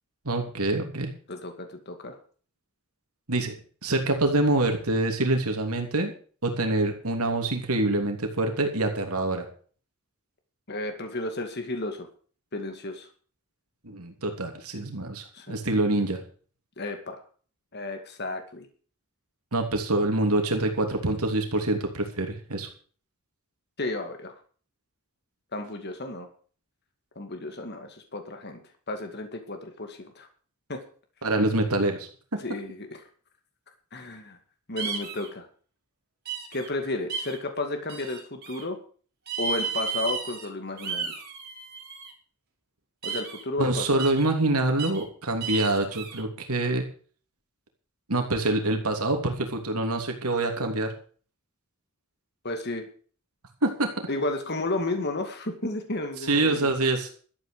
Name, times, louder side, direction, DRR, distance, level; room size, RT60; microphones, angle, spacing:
voice 1, 0.2-1.1 3.3-3.5 3.8-6.1 6.4-9.5 13.8-16.2 19.5-22.7 31.2-32.4 43.6-46.8 48.1-50.9 53.6-53.9 56.3-57.1, right 2 dB, 85° right, 4 dB, 3.1 m, -26 dB
voice 2, 1.3-2.1 10.7-12.1 12.5-13.1 15.3-15.6 16.8-17.2 17.7-18.7 23.8-24.3 25.5-26.3 27.2-28.6 28.9-30.3 30.7-30.8 32.4-32.9 33.9-34.4 34.7-35.5 36.5-38.8 39.4-41.1 43.0-44.0 52.4-52.9 54.1-56.7, left 2 dB, 50° left, 5 dB, 2.4 m, -32 dB
sound 1, 34.8-35.3 36.2-36.7 37.1-37.4 37.9-38.6 39.3-40.5 40.8-42.1 43.0-43.4 44.0-44.3 44.8-45.0 45.4-46.2, right 5 dB, 45° right, 4.7 m, -33 dB
13.5 x 9.2 x 6.9 m, 0.42 s
head